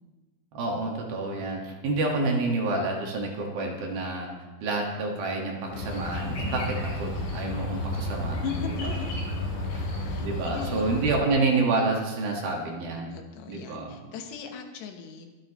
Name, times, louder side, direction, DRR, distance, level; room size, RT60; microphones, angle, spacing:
voice 1, 0.5-4.3 4.6-8.9 9.7-9.8 10.2-13.2 13.5-14.0, right 3 dB, 65° right, 0 dB, 3.3 m, -28 dB
sound 1, 5.7-11.1, left 1 dB, 50° left, 5.2 m, -32 dB
voice 2, 8.4-9.2 9.6-11.0 13.1-15.3, left 7 dB, 85° left, 4 dB, 3.4 m, -38 dB
23.0 x 8.8 x 3.0 m, 1.2 s
omnidirectional pair, 4.8 m